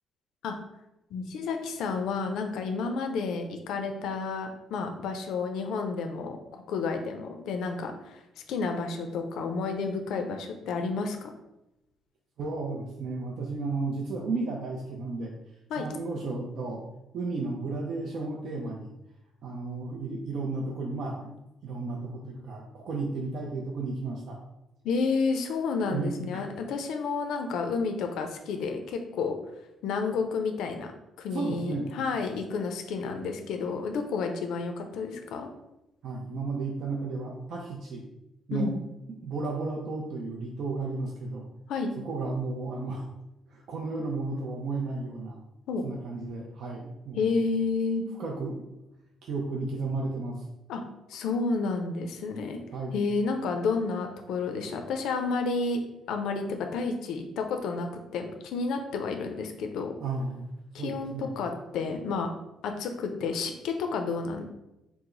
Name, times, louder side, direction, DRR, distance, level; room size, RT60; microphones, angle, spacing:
voice 1, 1.1-8.2 8.5-11.3 15.7-15.9 24.8-29.4 29.8-30.9 31.2-35.5 38.5-38.7 41.7-41.9 45.7-45.8 47.1-48.0 50.7-50.8 51.1-52.6 52.9-55.8 56.1-57.9 58.1-59.9 60.7-62.3 62.6-64.4, left 4 dB, 80° left, 5 dB, 0.5 m, -30 dB
voice 2, 12.4-15.3 15.8-16.8 17.1-18.9 19.4-21.3 21.6-24.4 25.9-26.4 31.3-31.9 36.0-38.1 38.5-38.7 39.2-41.5 42.0-43.0 43.5-45.4 45.8-47.3 48.2-48.6 49.2-50.4 52.7-52.9 60.0-60.4 60.8-61.3, right 3 dB, 55° right, -1 dB, 0.5 m, -33 dB
4.7 x 2.0 x 3.8 m, 0.91 s
cardioid pair, 155°, 0 cm